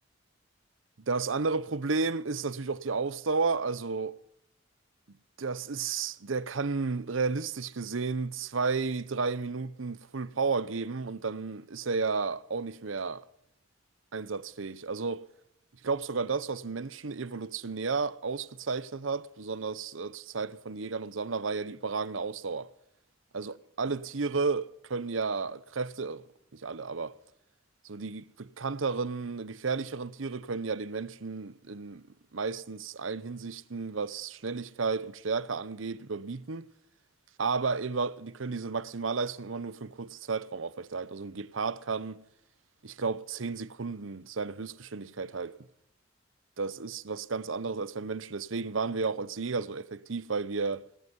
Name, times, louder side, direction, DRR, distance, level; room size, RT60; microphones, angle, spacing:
voice 1, 1.1-4.2 5.4-13.3 14.1-15.2 15.8-22.7 23.3-26.2 26.5-27.1 27.8-32.0 32.3-36.7 37.4-42.2 42.8-45.6 46.6-50.9, right 4 dB, 80° right, 0.8 m, -32 dB
18.0 x 13.5 x 5.4 m
head